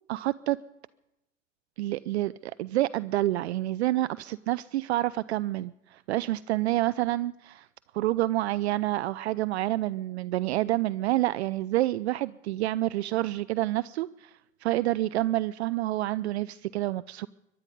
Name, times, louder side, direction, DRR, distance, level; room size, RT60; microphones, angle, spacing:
voice 1, 0.1-0.6 1.8-7.7 7.9-17.3, right 16 dB, 60° right, 16 dB, 0.4 m, -28 dB
23.0 x 11.0 x 5.4 m, 0.90 s
figure-of-eight pair, 85°, 38 cm